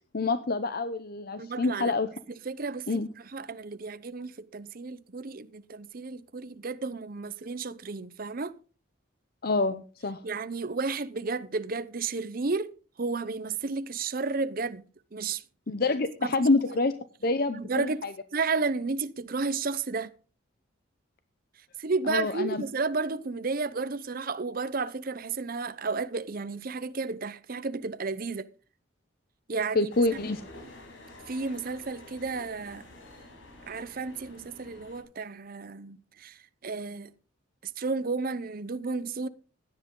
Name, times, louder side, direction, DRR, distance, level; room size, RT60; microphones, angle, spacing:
voice 1, 0.1-2.1 2.9-3.1 9.4-10.2 15.7-16.9 17.2-18.1 22.1-22.6 29.7-30.4, left 3 dB, 50° left, 0.7 m, -27 dB
voice 2, 1.4-1.9 2.4-3.0 3.3-8.5 10.2-12.7 13.0-14.8 15.1-15.4 16.2-16.8 17.5-18.0 18.3-20.1 21.8-28.5 29.5-29.9 31.3-32.8 33.7-37.1 37.8-39.3, right 4 dB, 45° right, 0.6 m, -32 dB
sound 1, 29.9-35.0, left 2 dB, 75° left, 5.4 m, -49 dB
16.5 x 10.5 x 3.8 m
head